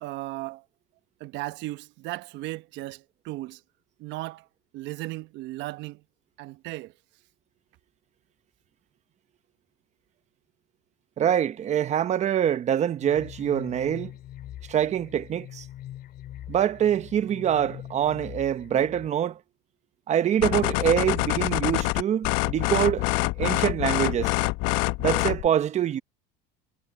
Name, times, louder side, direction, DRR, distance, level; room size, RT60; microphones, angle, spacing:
voice 1, 0.0-0.6 1.2-3.6 4.0-4.5 4.7-6.0 6.4-6.9, right 18 dB, 60° right, 1.1 m, -36 dB
voice 2, 11.2-14.1 14.7-15.7 16.5-19.4 20.1-23.0 23.4-24.3 25.0-26.0, right 10 dB, 35° right, 1.0 m, -25 dB
sound 1, 13.0-19.1, left 12 dB, 50° left, 3.4 m, -43 dB
sound 2, 20.4-25.5, left 21 dB, 70° left, 0.9 m, -25 dB
supercardioid pair, 130°, 21 cm